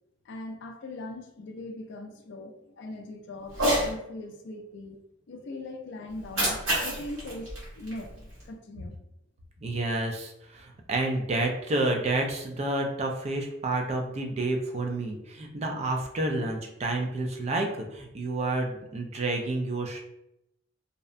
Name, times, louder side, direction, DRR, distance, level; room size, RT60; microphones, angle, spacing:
voice 1, 0.3-5.0 5.3-9.0, left 1 dB, 60° left, 5 dB, 0.4 m, -40 dB
Cat, 3.5-3.9 6.1-8.5, right 1 dB, 70° right, 1.1 m, -29 dB
voice 2, 9.6-20.0, right 2 dB, 35° right, 2 dB, 0.3 m, -29 dB
2.6 x 2.1 x 2.4 m, 0.82 s
head